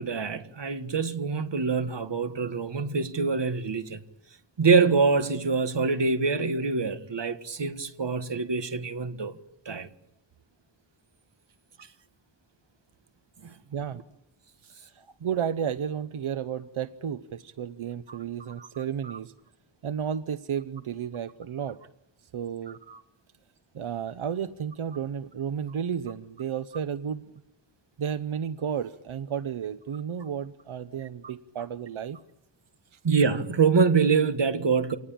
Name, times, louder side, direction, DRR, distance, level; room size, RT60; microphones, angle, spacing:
voice 1, 0.0-4.0 4.6-9.4 9.7-9.9 13.4-13.5 22.9-23.0 33.0-35.0, right 5 dB, 60° right, 1.8 m, -25 dB
voice 2, 13.7-14.0 14.6-19.3 19.8-21.8 22.2-22.8 23.7-27.2 28.0-32.2 32.9-33.0, right 8 dB, 90° right, 0.9 m, -32 dB
27.0 x 19.5 x 8.7 m
wide cardioid pair, 90°, 48 cm